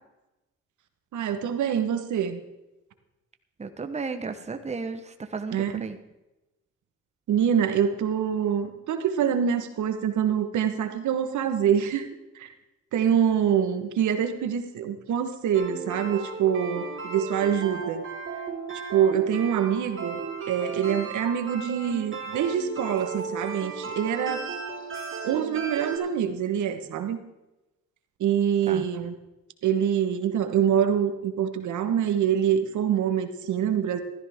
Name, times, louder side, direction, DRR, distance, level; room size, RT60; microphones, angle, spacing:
voice 1, 1.1-2.4 5.5-5.9 7.3-12.1 12.3-12.5 12.9-18.0 18.9-20.2 20.5-24.5 25.2-27.2 28.2-29.1 29.6-34.0, right 8 dB, 75° right, 9 dB, 1.4 m, -25 dB
voice 2, 3.6-6.0 28.7-28.9, right 4 dB, 20° right, 8 dB, 1.1 m, -34 dB
sound 1, 15.5-26.0, right 5 dB, 40° right, 3.8 m, -35 dB
14.5 x 13.5 x 3.6 m, 0.99 s
cardioid pair, 90°, 30 cm